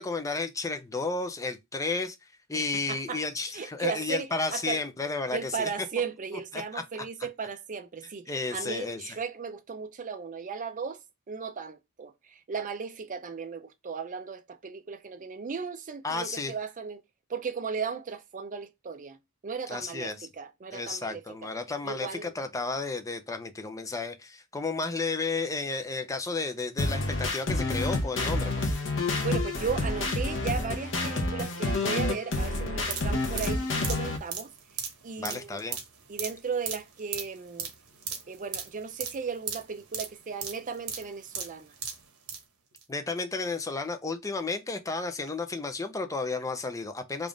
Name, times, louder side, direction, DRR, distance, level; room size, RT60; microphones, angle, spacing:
voice 1, 0.0-2.2 2.5-5.9 6.5-6.8 8.3-9.0 16.0-16.5 19.7-20.3 20.7-28.7 35.2-35.8 42.9-47.3, left 3 dB, 15° left, 0.5 m, -32 dB
voice 2, 2.5-3.2 3.5-4.8 5.3-11.0 11.3-17.0 17.3-19.2 19.4-21.5 21.8-22.3 29.2-34.5 35.0-35.6 36.1-37.7 38.3-41.7, right 5 dB, 35° right, 0.5 m, -36 dB
Juno Pulse Square, 26.8-34.2, left 2 dB, 60° left, 0.8 m, -29 dB
sound 1, 32.8-42.4 42.8-42.9, right 7 dB, 85° right, 0.9 m, -37 dB
3.5 x 2.4 x 3.8 m
head